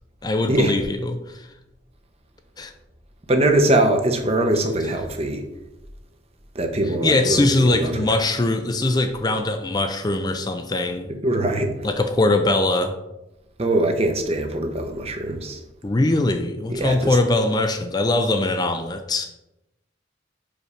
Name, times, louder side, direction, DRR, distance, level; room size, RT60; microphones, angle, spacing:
voice 1, 0.2-1.5 2.6-2.7 7.0-11.1 11.8-12.9 15.8-19.2, left 2 dB, 20° left, 7 dB, 0.4 m, -21 dB
voice 2, 3.3-5.4 6.5-8.0 11.2-11.7 13.6-15.6 16.7-17.2, right 1 dB, 35° right, 5 dB, 0.9 m, -22 dB
5.3 x 5.2 x 5.0 m, 0.93 s
head